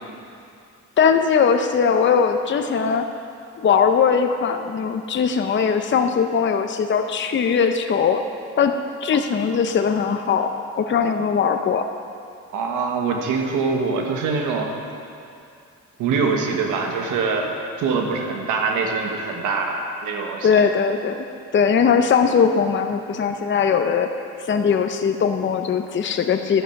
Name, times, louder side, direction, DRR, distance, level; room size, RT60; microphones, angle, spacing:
voice 1, 1.0-3.1 3.6-8.2 8.6-10.5 10.8-11.9 20.4-21.2 21.5-24.1 24.4-26.6, left 6 dB, 40° left, 6 dB, 0.7 m, -20 dB
voice 2, 12.5-14.7 16.0-17.5 17.8-20.6, right 4 dB, 90° right, 2 dB, 1.3 m, -24 dB
12.0 x 9.8 x 5.9 m, 2.5 s
cardioid pair, 90°, 30 cm